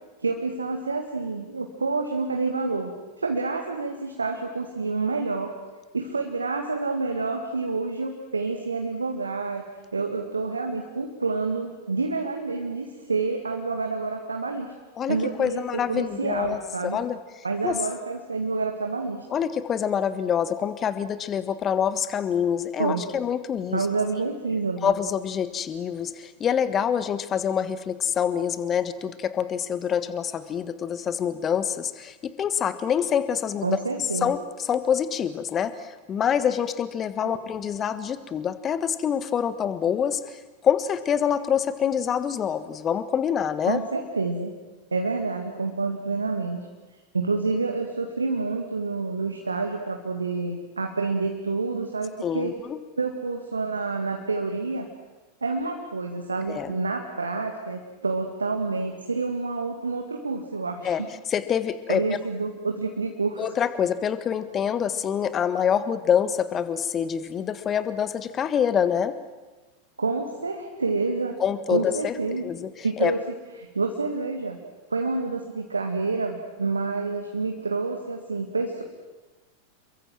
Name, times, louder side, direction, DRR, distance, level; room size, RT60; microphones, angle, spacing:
voice 1, 0.2-2.9 3.2-5.5 5.9-9.6 9.9-14.7 15.1-17.0 17.4-19.2 22.8-23.0 23.7-24.9 33.6-34.3 37.2-37.4 43.7-44.5 44.9-46.7 47.1-52.5 53.0-54.9 55.4-61.1 61.9-63.4 70.0-71.4 71.7-72.5 72.8-73.2 73.7-74.6 74.9-78.8, right 3 dB, 75° right, 3 dB, 2.2 m, -28 dB
voice 2, 15.0-17.2 17.6-17.8 19.3-23.8 24.8-33.8 34.2-43.8 52.2-52.8 56.5-56.7 60.8-61.0 61.3-62.0 63.4-69.1 71.4-72.1 72.4-72.7 73.0-73.2, left 8 dB, 25° left, 14 dB, 1.5 m, -26 dB
28.5 x 22.5 x 7.6 m, 1.2 s
figure-of-eight pair, 90°, 0 cm